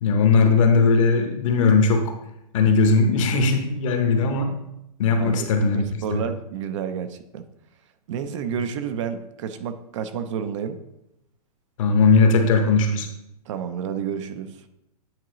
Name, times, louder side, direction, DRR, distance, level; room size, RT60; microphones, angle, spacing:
voice 1, 0.0-2.1 2.5-4.5 5.0-5.8 6.1-6.2 11.8-13.1, left 4 dB, 55° left, 5 dB, 1.0 m, -18 dB
voice 2, 5.1-7.5 8.1-10.8 13.5-14.6, right 7 dB, 50° right, 10 dB, 0.5 m, -30 dB
8.7 x 3.7 x 3.1 m, 0.84 s
hypercardioid pair, 140°, 20 cm